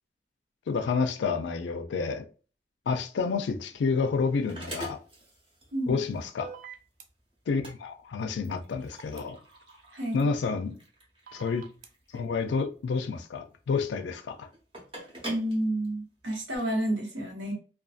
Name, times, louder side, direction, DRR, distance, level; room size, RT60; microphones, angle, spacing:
voice 1, 0.7-2.3 2.9-5.0 5.9-6.5 7.5-9.4 10.1-10.8 11.3-11.7 12.1-14.5, left 5 dB, 85° left, 0.4 m, -29 dB
sound 1, 3.3-16.6, right 1 dB, 30° right, 0.7 m, -47 dB
sound 2, 6.4-7.0 9.2-9.3 11.3-11.9, right 7 dB, 50° right, 0.4 m, -44 dB
voice 2, 9.9-10.2 15.2-17.5, right 1 dB, 90° right, 1.1 m, -30 dB
2.5 x 2.3 x 2.4 m
head